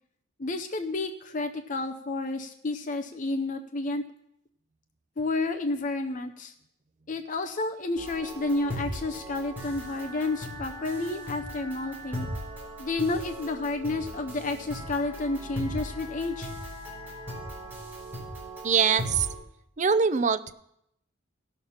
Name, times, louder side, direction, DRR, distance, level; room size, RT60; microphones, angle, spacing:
voice 1, 0.4-4.0 5.2-6.5 7.1-12.3 12.8-16.5, left 2 dB, 40° left, 7 dB, 0.6 m, -30 dB
sound 1, 8.0-19.3, equal, 10° right, 4.2 m, -38 dB
voice 2, 18.6-19.3 19.8-20.5, right 6 dB, 35° right, 13 dB, 0.5 m, -23 dB
16.5 x 6.5 x 5.7 m, 0.77 s
head